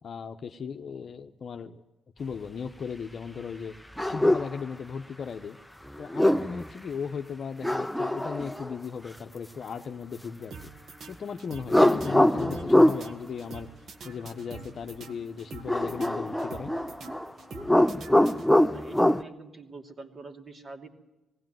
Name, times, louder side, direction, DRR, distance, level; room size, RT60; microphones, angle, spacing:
voice 1, 0.0-1.8 2.2-3.8 4.0-5.6 6.0-10.7 11.1-13.7 14.0-16.7, left 6 dB, 50° left, 6 dB, 0.9 m, -37 dB
sound 1, 4.0-4.5 6.0-6.7 7.6-8.7 11.7-13.0 15.7-17.3 17.5-19.2, left 1 dB, 5° left, 0.7 m, -23 dB
sound 2, 10.5-18.8, right 4 dB, 55° right, 1.6 m, -46 dB
voice 2, 18.7-20.9, right 2 dB, 35° right, 5 dB, 2.7 m, -44 dB
19.0 x 16.5 x 9.2 m, 1.0 s
cardioid pair, 90°, 0 cm